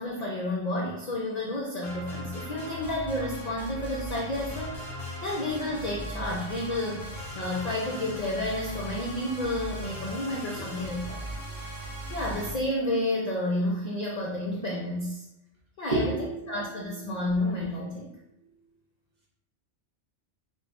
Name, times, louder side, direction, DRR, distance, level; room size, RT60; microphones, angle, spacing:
voice 1, 0.0-4.7 5.2-11.3 12.1-15.2 15.8-18.1, left 1 dB, 60° left, -2 dB, 0.4 m, -31 dB
sound 1, 1.8-12.5, right 1 dB, ahead, 1.1 m, -38 dB
voice 2, 15.9-17.2, right 2 dB, 45° right, -4 dB, 0.6 m, -32 dB
4.8 x 2.2 x 2.4 m, 0.88 s
omnidirectional pair, 1.2 m